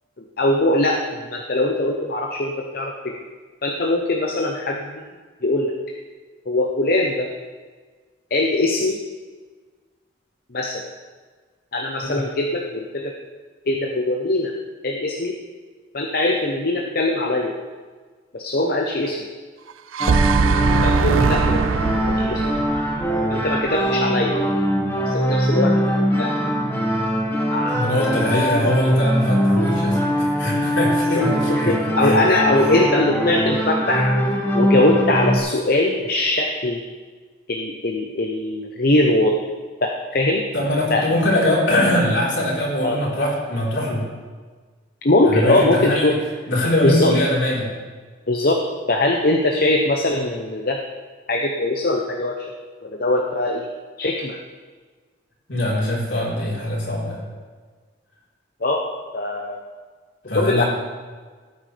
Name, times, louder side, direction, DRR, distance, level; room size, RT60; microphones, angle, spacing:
voice 1, 0.4-3.1 3.6-5.0 5.4-5.7 6.5-7.3 8.3-9.0 10.5-10.8 11.7-13.1 13.6-14.5 14.8-15.3 15.9-17.5 18.3-19.2 20.8-22.4 23.3-24.3 25.1-25.7 26.2-26.3 27.3-27.8 31.1-34.2 34.5-36.8 37.5-39.4 39.8-40.5 40.9-41.0 42.8-43.0 45.0-46.1 46.8-47.1 48.3-48.6 48.9-50.8 51.3-52.5 52.8-53.7 54.0-54.4 58.6-58.8 59.1-59.6 60.3-60.6, left 2 dB, 50° left, 1 dB, 0.8 m, -21 dB
sound 1, 19.7-23.9, right 5 dB, 85° right, 0.5 m, -21 dB
sound 2, 20.0-35.4, equal, 10° left, 1.5 m, -22 dB
voice 2, 27.7-32.2 32.6-32.8 40.5-44.0 45.3-46.1 46.5-47.7 55.5-57.2 60.2-60.7, left 1 dB, 65° left, -5 dB, 4.1 m, -22 dB
17.5 x 9.5 x 3.4 m, 1.5 s
head